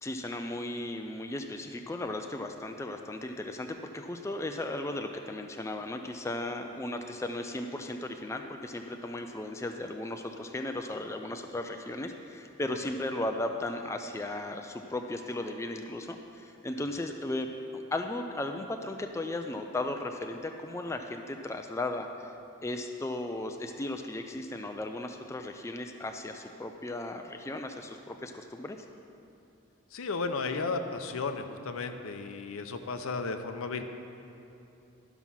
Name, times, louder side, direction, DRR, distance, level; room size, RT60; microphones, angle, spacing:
voice 1, 0.0-22.3 22.6-28.8, left 1 dB, 15° left, 5 dB, 0.3 m, -36 dB
voice 2, 29.9-33.8, left 4 dB, 75° left, 7 dB, 0.6 m, -34 dB
12.0 x 6.0 x 5.6 m, 2.8 s
head